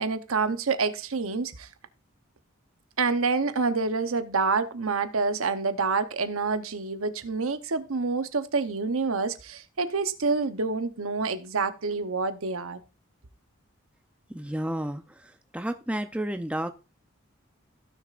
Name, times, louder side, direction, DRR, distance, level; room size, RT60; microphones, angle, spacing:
voice 1, 0.0-1.7 3.0-12.8, right 4 dB, 85° right, 0.9 m, -27 dB
voice 2, 14.3-15.0 15.5-16.7, right 1 dB, 5° right, 0.6 m, -31 dB
16.0 x 6.5 x 2.5 m
head